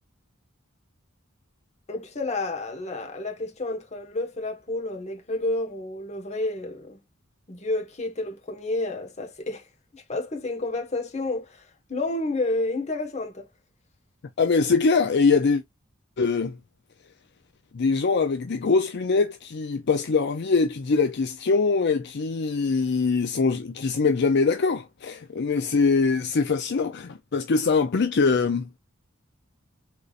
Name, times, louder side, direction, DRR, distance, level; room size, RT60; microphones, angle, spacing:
voice 1, 1.9-7.0 7.5-9.6 9.9-11.6 11.9-13.5, left 2 dB, 35° left, 1.3 m, -30 dB
voice 2, 14.4-15.6 16.2-16.6 17.7-28.7, left 4 dB, 60° left, 0.5 m, -23 dB
4.5 x 4.0 x 2.5 m
head